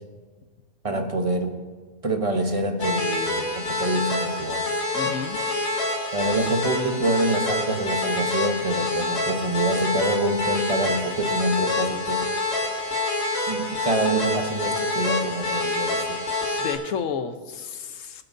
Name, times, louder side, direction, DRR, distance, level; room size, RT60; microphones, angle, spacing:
voice 1, 0.8-1.6 2.0-4.7 6.1-12.3 13.5-16.2, right 2 dB, 25° right, 4 dB, 1.0 m, -26 dB
sound 1, 2.8-16.7, left 2 dB, 50° left, 2.5 m, -27 dB
voice 2, 4.9-5.4 16.6-18.2, left 6 dB, 70° left, 9 dB, 1.2 m, -31 dB
24.5 x 9.0 x 2.7 m, 1.4 s
omnidirectional pair, 1.4 m